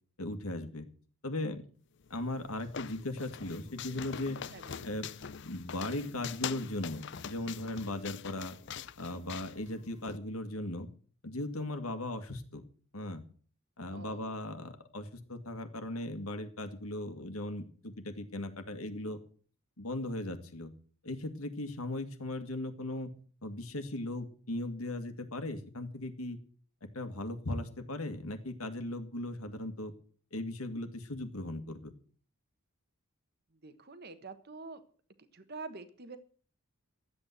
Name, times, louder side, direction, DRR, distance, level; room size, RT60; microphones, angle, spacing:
voice 1, 0.2-0.9 1.2-1.6 2.1-4.4 4.8-5.1 5.5-8.6 9.0-10.9 11.2-12.6 12.9-13.2 13.8-19.2 19.8-20.7 21.0-23.1 23.4-26.4 26.9-29.9 30.3-31.9, left 1 dB, 75° left, 8 dB, 2.0 m, -38 dB
sound 1, 2.0-10.2, left 7 dB, 50° left, 0.5 m, -44 dB
voice 2, 4.5-4.9 13.9-14.3 33.6-34.8 35.3-36.2, right 3 dB, 45° right, 11 dB, 1.3 m, -46 dB
13.0 x 8.4 x 7.9 m, 0.43 s
head